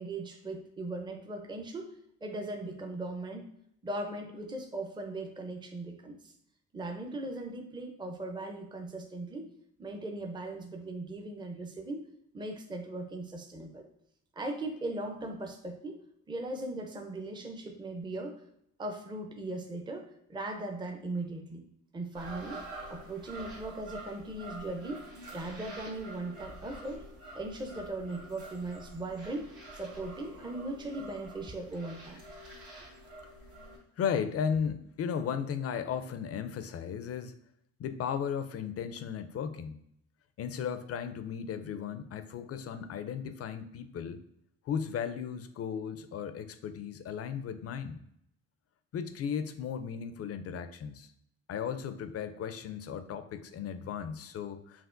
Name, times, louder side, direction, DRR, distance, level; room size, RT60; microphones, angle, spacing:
voice 1, 0.0-1.9 2.2-3.5 3.8-6.2 6.7-9.5 9.8-12.1 12.3-13.8 14.4-16.0 16.3-18.4 18.8-21.6 21.9-22.6 22.9-25.1 25.3-27.1 27.3-32.2, right 2 dB, 15° right, 3 dB, 0.5 m, -38 dB
sound 1, 22.1-33.8, right 2 dB, 80° right, 1.4 m, -47 dB
voice 2, 34.0-37.3 37.8-39.8 40.4-44.2 44.7-48.0 48.9-51.1 51.5-54.9, left 7 dB, 50° left, 10 dB, 0.4 m, -35 dB
5.8 x 2.4 x 2.5 m, 0.73 s
cardioid pair, 90°, 30 cm